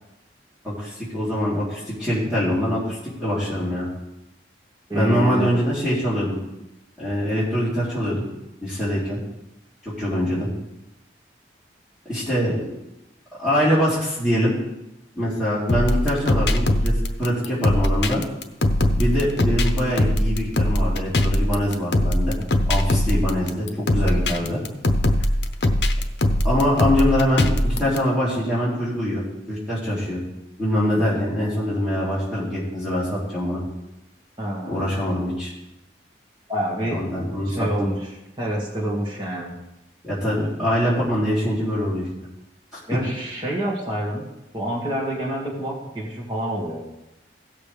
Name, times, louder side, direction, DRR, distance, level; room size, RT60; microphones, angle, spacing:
voice 1, 0.6-3.9 4.9-6.4 7.0-8.2 8.6-9.2 9.8-10.5 12.0-12.6 13.4-14.5 15.1-18.2 19.0-22.3 22.7-24.6 26.4-30.2 30.6-33.6 34.7-35.5 36.9-37.9 40.0-42.1 42.9-43.0, equal, 5° right, -11 dB, 3.5 m, -23 dB
voice 2, 4.9-5.6 12.4-12.6 34.4-34.9 36.5-37.0 37.4-38.1 38.4-39.6 42.9-44.2 44.5-46.8, right 1 dB, 25° right, -5 dB, 2.1 m, -27 dB
sound 1, 15.7-28.0, left 1 dB, 65° left, 0.8 m, -21 dB
16.5 x 6.9 x 3.4 m, 0.93 s
head